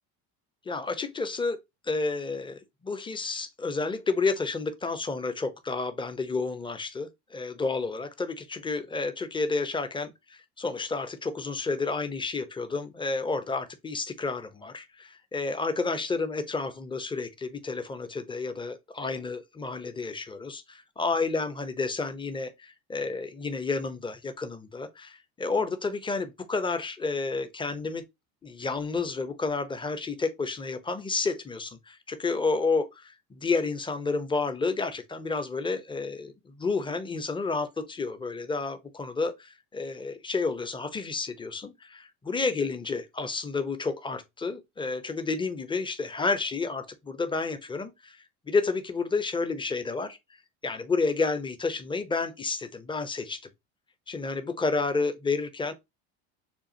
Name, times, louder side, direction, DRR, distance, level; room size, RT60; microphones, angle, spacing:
voice 1, 0.7-1.6 1.8-28.0 28.4-48.2 48.5-50.2 50.6-53.4 54.1-55.7, left 4 dB, 15° left, 0.7 m, -30 dB
6.9 x 2.4 x 2.8 m
supercardioid pair, 95°, 35 cm